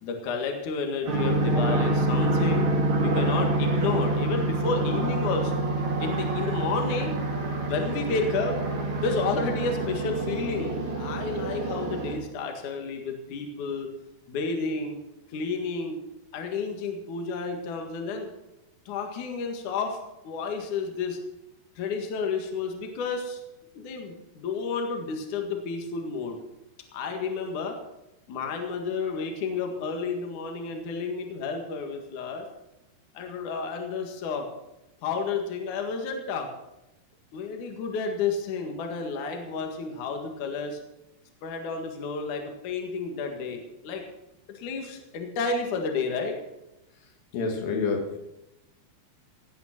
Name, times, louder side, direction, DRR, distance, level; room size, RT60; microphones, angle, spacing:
voice 1, 0.0-2.7 3.0-5.6 6.0-7.1 7.6-8.6 9.0-13.9 14.3-15.0 15.3-16.0 16.3-18.3 18.9-20.0 20.2-21.2 21.8-23.4 23.7-26.4 26.9-27.8 28.3-32.4 33.1-34.5 35.0-36.5 37.3-40.8 41.4-44.0 44.5-46.4, left 4 dB, 55° left, 3 dB, 2.9 m, -31 dB
sound 1, 1.0-12.2, right 2 dB, 35° right, 2.6 m, -27 dB
voice 2, 47.3-48.2, left 4 dB, 75° left, 2 dB, 4.1 m, -28 dB
17.5 x 9.3 x 5.9 m, 0.92 s
omnidirectional pair, 4.9 m